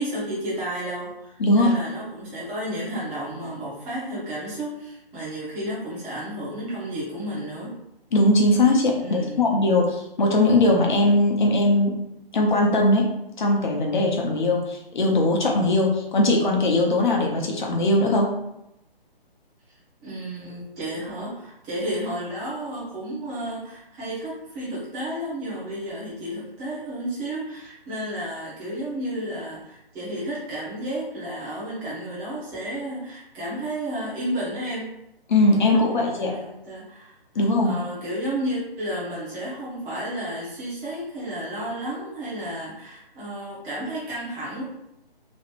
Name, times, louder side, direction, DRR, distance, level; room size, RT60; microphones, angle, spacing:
voice 1, 0.0-7.7 8.9-9.7 20.0-34.9 35.5-44.6, right 1 dB, 10° right, -8 dB, 0.9 m, -32 dB
voice 2, 1.4-1.8 8.1-11.9 12.3-13.1 13.4-18.3 35.3-36.3 37.3-37.7, left 2 dB, 50° left, 0 dB, 1.0 m, -20 dB
3.1 x 2.8 x 3.0 m, 0.85 s
figure-of-eight pair, 145°, 30 cm